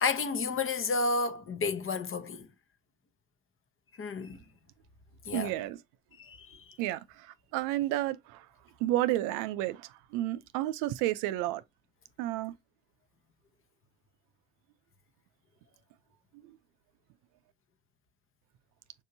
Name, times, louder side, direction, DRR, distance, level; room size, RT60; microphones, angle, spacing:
voice 1, 0.0-2.5 4.0-4.4 5.2-5.6 6.2-6.8, left 4 dB, 40° left, 0.9 m, -31 dB
voice 2, 5.3-5.8 6.8-7.3 7.5-8.4 8.8-11.6 12.2-12.5, right 15 dB, 90° right, 0.5 m, -31 dB
6.7 x 2.7 x 2.6 m
supercardioid pair, 75°, 31 cm